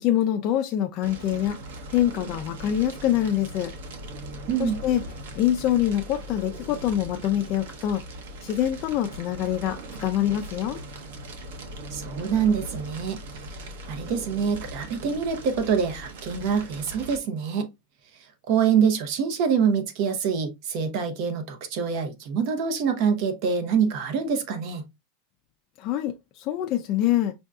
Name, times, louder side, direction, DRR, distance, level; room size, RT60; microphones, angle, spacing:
voice 1, 0.0-1.6 1.9-3.7 4.6-5.0 5.4-8.0 8.4-10.8 25.8-27.3, left 11 dB, 40° left, 0.4 m, -25 dB
Fire, 1.0-17.2, right 1 dB, 85° right, 0.8 m, -39 dB
voice 2, 4.5-4.8 11.9-13.2 13.9-17.7 18.5-24.8, right 6 dB, 50° right, 0.8 m, -25 dB
5.3 x 2.6 x 2.3 m
supercardioid pair, 160°, 0 cm